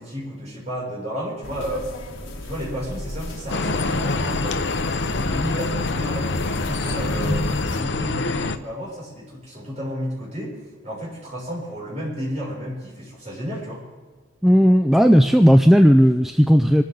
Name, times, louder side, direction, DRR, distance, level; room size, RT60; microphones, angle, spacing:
voice 1, 0.0-1.9 2.2-10.6 10.8-13.9, equal, 35° right, -5 dB, 6.6 m, -32 dB
sound 1, 1.4-7.8, left 1 dB, 85° left, 1.5 m, -32 dB
sound 2, 3.5-8.6, left 3 dB, 65° left, 0.7 m, -25 dB
voice 2, 14.4-16.8, equal, ahead, 6 dB, 0.4 m, -14 dB
25.0 x 14.0 x 3.9 m, 1.4 s
head